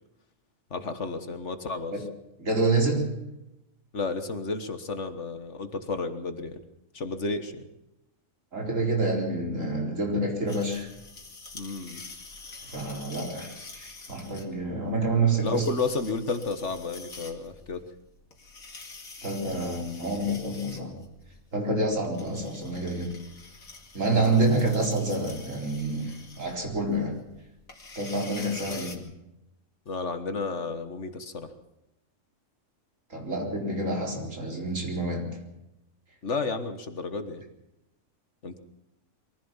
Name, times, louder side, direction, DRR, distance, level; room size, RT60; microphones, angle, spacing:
voice 1, 0.7-1.9 3.9-6.6 6.9-7.7 11.5-12.0 15.4-17.8 28.7-28.8 29.9-31.5 36.2-37.4 38.4-38.6, left 3 dB, 60° left, 9 dB, 1.8 m, -32 dB
voice 2, 2.4-3.2 8.5-10.9 12.7-15.7 19.2-21.0 21.5-23.2 23.9-27.2 28.0-29.0 33.1-35.4, right 2 dB, 65° right, 1 dB, 4.6 m, -28 dB
sound 1, 10.5-29.0, left 3 dB, 90° left, 2.9 m, -46 dB
23.0 x 15.5 x 7.3 m, 0.89 s
omnidirectional pair, 1.4 m